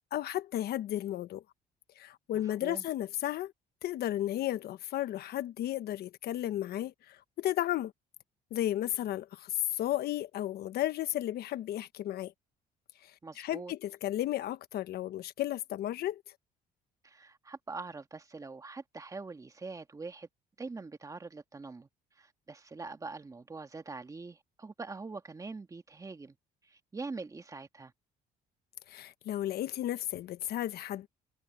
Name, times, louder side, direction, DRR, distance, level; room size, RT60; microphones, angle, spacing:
voice 1, 0.0-1.4 2.0-3.5 3.8-7.9 8.5-12.3 13.4-16.2 28.9-31.1, left 13 dB, 70° left, 1.2 m, -33 dB
voice 2, 2.3-2.9 13.2-13.7 17.0-20.3 20.6-26.4 26.6-27.9, right 3 dB, 20° right, 1.8 m, -44 dB
cardioid pair, 110°, 17 cm